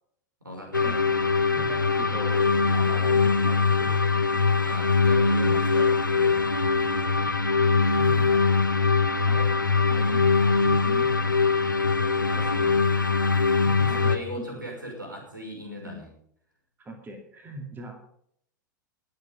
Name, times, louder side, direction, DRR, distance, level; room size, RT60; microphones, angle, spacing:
voice 1, 0.4-0.9 4.6-6.5 12.3-12.8 13.8-16.1, equal, 80° right, 1 dB, 5.7 m, -39 dB
sound 1, 0.7-14.2, left 4 dB, 80° left, 1.1 m, -22 dB
voice 2, 1.6-4.0 7.9-8.4 9.3-9.5 9.9-11.1 11.8-12.5 13.6-14.0 14.5-14.6 15.8-16.0 16.8-18.0, right 1 dB, 20° right, 4 dB, 2.4 m, -41 dB
20.0 x 7.9 x 5.4 m, 0.67 s
figure-of-eight pair, 95°, 10 cm